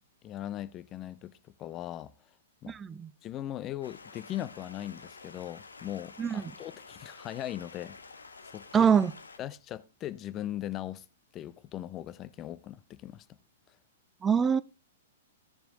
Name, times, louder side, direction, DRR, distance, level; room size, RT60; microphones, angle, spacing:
voice 1, 0.2-1.3 1.6-2.1 2.6-2.8 3.2-8.0 8.5-8.9 9.4-11.0 11.3-13.3, left 12 dB, 30° left, 0.6 m, -39 dB
voice 2, 2.7-3.1 6.2-6.5 8.7-9.1 14.2-14.6, right 7 dB, 15° right, 0.5 m, -24 dB
Stream, 3.8-9.4, left 4 dB, 75° left, 1.0 m, -50 dB
15.0 x 6.9 x 3.6 m
figure-of-eight pair, 110°, 0 cm